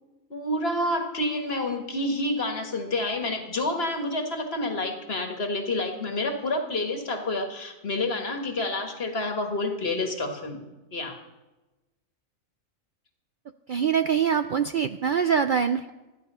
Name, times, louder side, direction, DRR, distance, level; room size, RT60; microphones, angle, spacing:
voice 1, 0.3-10.6 10.9-11.2, left 2 dB, 50° left, 4 dB, 1.8 m, -28 dB
voice 2, 13.7-15.9, right 7 dB, 65° right, 9 dB, 0.5 m, -24 dB
15.0 x 10.5 x 5.5 m, 1.1 s
omnidirectional pair, 1.4 m